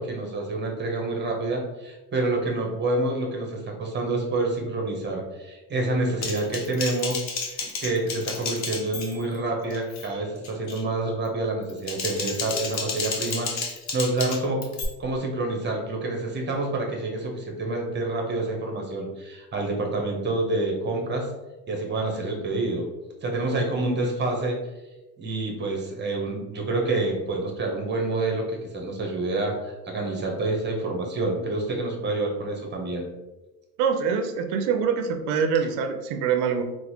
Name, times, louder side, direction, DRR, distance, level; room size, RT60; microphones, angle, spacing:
voice 1, 0.0-7.3 7.8-14.6 15.0-21.3 21.7-22.8 23.2-24.6 25.2-33.0, right 2 dB, 20° right, 1 dB, 0.9 m, -28 dB
Typing, 6.2-9.4 9.7-10.1 10.4-10.8 11.6-14.8, left 4 dB, 35° left, 0.7 m, -32 dB
voice 2, 33.8-36.6, right 6 dB, 60° right, 6 dB, 0.6 m, -24 dB
3.8 x 2.1 x 3.0 m, 1.1 s
hypercardioid pair, 85°, 48 cm